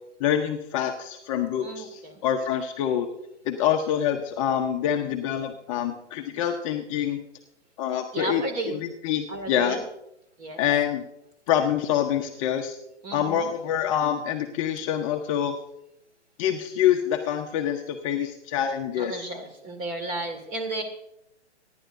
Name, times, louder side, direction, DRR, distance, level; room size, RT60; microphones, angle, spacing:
voice 1, 0.2-3.1 3.4-7.2 7.8-9.8 10.6-11.0 11.5-12.8 13.1-15.6 16.4-19.2, left 9 dB, 30° left, 4 dB, 0.8 m, -26 dB
voice 2, 1.6-2.2 8.1-8.7 9.3-9.8 10.4-10.6 13.0-13.5 19.0-20.8, right 2 dB, 25° right, 6 dB, 2.1 m, -33 dB
23.5 x 10.5 x 2.6 m, 0.81 s
figure-of-eight pair, 125°, 35 cm